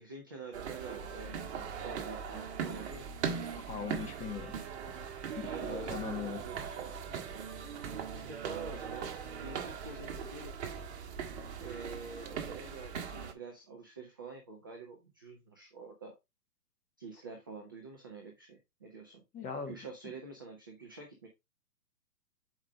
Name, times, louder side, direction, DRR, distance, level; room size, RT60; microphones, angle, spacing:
voice 1, 0.0-3.1 5.4-7.2 8.1-10.6 11.6-16.1 17.0-19.2 19.7-21.3, right 4 dB, 15° right, 0.4 m, -47 dB
sound 1, 0.5-13.3, right 6 dB, 45° right, 1.6 m, -40 dB
voice 2, 3.5-4.6 5.4-6.4 19.3-19.8, left 6 dB, 15° left, 1.4 m, -40 dB
8.0 x 4.9 x 3.3 m
hypercardioid pair, 130°, 48 cm